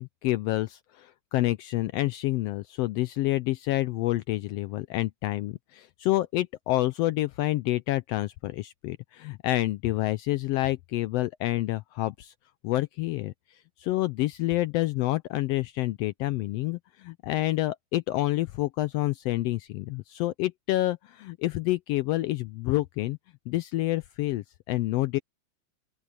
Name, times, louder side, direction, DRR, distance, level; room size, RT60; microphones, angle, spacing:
voice 1, 0.0-12.3 12.6-13.3 13.8-23.2 23.5-25.2, left 17 dB, 85° left, 1.4 m, -28 dB
open air
omnidirectional pair, 3.4 m